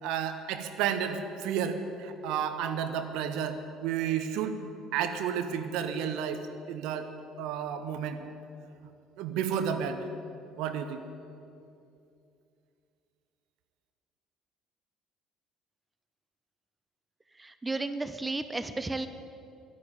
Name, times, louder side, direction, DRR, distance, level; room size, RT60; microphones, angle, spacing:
voice 1, 0.0-4.6 4.9-6.4 6.7-7.1 7.4-8.3 9.2-10.1 10.6-11.0, right 8 dB, 60° right, 8 dB, 1.0 m, -31 dB
voice 2, 17.4-19.1, right 2 dB, 15° right, 11 dB, 0.7 m, -33 dB
10.5 x 10.5 x 9.2 m, 2.6 s
figure-of-eight pair, 55°, 0 cm